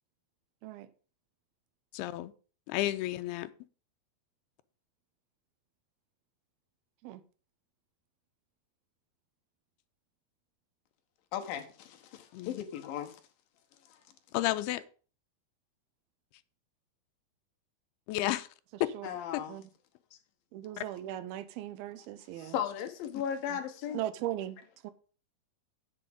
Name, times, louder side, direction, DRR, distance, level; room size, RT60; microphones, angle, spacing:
voice 1, 1.9-2.3 2.7-3.5 12.3-12.6 14.3-14.8 18.1-18.5 18.8-18.9 19.3-19.4 20.8-20.9, left 16 dB, 90° left, 2.6 m, -31 dB
voice 2, 11.3-13.2 13.9-14.0 19.0-19.6 22.4-24.0, left 9 dB, 75° left, 2.7 m, -36 dB
voice 3, 20.5-22.6 23.5-23.6 23.9-24.9, right 13 dB, 85° right, 2.6 m, -38 dB
8.4 x 7.3 x 5.2 m
omnidirectional pair, 4.4 m